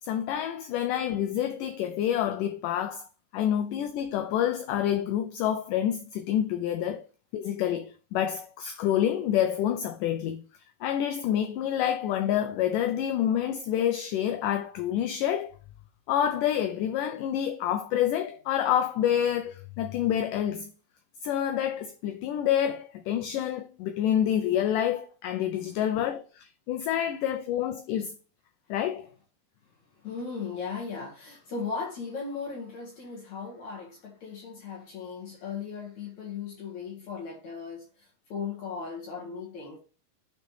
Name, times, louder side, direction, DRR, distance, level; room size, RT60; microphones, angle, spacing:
voice 1, 0.1-3.0 3.3-7.1 7.3-10.4 10.8-15.5 16.1-20.7 21.2-28.1 28.7-29.1, left 10 dB, 75° left, 2.1 m, -28 dB
voice 2, 25.4-25.8 30.0-37.9 38.3-39.8, left 5 dB, 60° left, 2.7 m, -37 dB
11.5 x 4.2 x 3.2 m
omnidirectional pair, 4.1 m